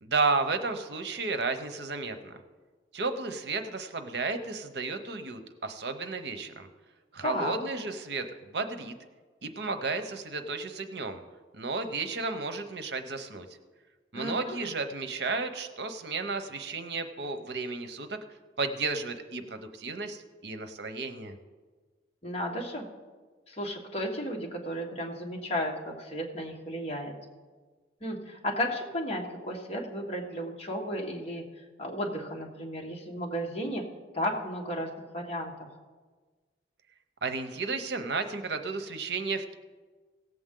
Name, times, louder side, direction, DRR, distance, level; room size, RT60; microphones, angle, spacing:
voice 1, 0.0-2.4 2.9-6.7 7.1-8.9 9.4-11.2 11.5-13.5 14.1-18.2 18.6-21.4 37.2-39.5, right 3 dB, 70° right, 8 dB, 0.8 m, -33 dB
voice 2, 7.2-7.6 14.1-14.6 22.2-22.8 23.5-27.1 28.0-31.4 31.8-33.8 34.1-35.5, equal, 35° left, -1 dB, 1.6 m, -34 dB
17.5 x 7.7 x 3.8 m, 1.4 s
head